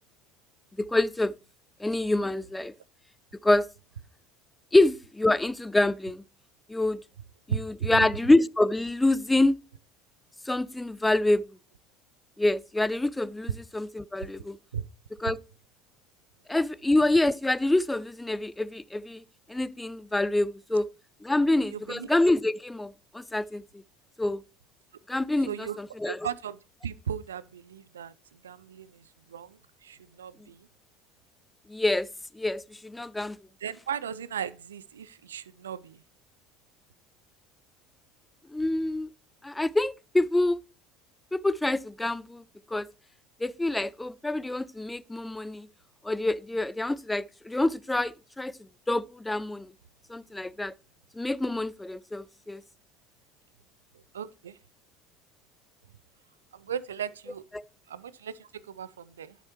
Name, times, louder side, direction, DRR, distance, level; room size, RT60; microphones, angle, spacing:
voice 1, 0.8-1.3 1.8-2.7 3.4-3.7 4.7-6.2 6.7-7.0 7.5-9.6 10.5-11.4 12.4-14.6 15.2-15.4 16.5-19.2 19.5-20.9 21.2-23.6 24.2-24.4 25.1-26.2 31.7-32.1 32.3-33.4 38.5-39.1 39.4-40.6 41.3-42.4 42.7-42.9 43.4-45.7 46.0-48.5 48.9-49.7 50.1-50.7 51.2-52.6 57.5-57.6, left 2 dB, 10° left, 0.3 m, -26 dB
voice 2, 7.5-8.0 14.7-14.8 21.7-22.1 25.5-25.8 26.0-30.7 33.6-36.0 54.1-54.6 56.5-57.4 57.9-59.4, right 8 dB, 75° right, 0.4 m, -37 dB
11.5 x 6.5 x 2.9 m
figure-of-eight pair, 65°, 0 cm